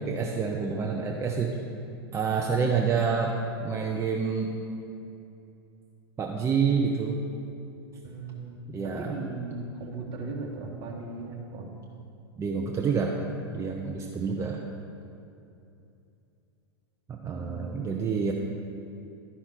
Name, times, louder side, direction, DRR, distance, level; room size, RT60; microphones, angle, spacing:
voice 1, 0.0-1.5 2.1-3.3 3.6-4.5 6.2-7.2 8.7-9.1 12.4-13.1 13.5-14.6 17.1-18.3, right 5 dB, 20° right, 1 dB, 0.6 m, -28 dB
voice 2, 8.0-11.7 17.4-18.1, right 3 dB, 35° right, -1 dB, 1.7 m, -38 dB
11.0 x 5.6 x 4.6 m, 2.7 s
hypercardioid pair, 95°, 13 cm